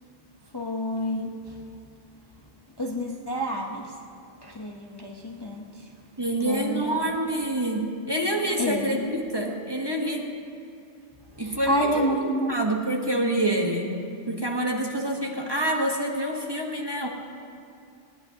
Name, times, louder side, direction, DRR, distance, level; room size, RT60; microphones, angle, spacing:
voice 1, 0.5-1.7 2.8-4.0 4.4-6.0 6.4-7.1 8.6-9.1 11.3-12.6, equal, 25° left, -1 dB, 0.8 m, -29 dB
voice 2, 6.2-10.3 11.4-17.1, right 1 dB, 20° right, 0 dB, 1.1 m, -27 dB
19.5 x 18.5 x 2.8 m, 2.5 s
omnidirectional pair, 1.2 m